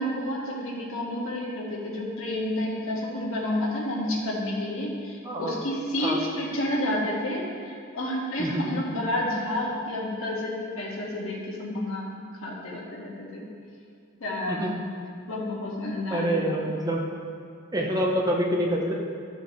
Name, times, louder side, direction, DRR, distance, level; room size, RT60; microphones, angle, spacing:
voice 1, 0.0-12.1 12.4-13.4 14.2-14.8 15.3-16.7, left 1 dB, 70° left, -3 dB, 1.8 m, -30 dB
voice 2, 5.2-5.6 6.0-6.2 8.4-8.8 14.5-14.8 16.1-17.0 17.7-18.9, equal, 20° right, -1 dB, 0.9 m, -26 dB
13.0 x 6.8 x 3.2 m, 2.3 s
head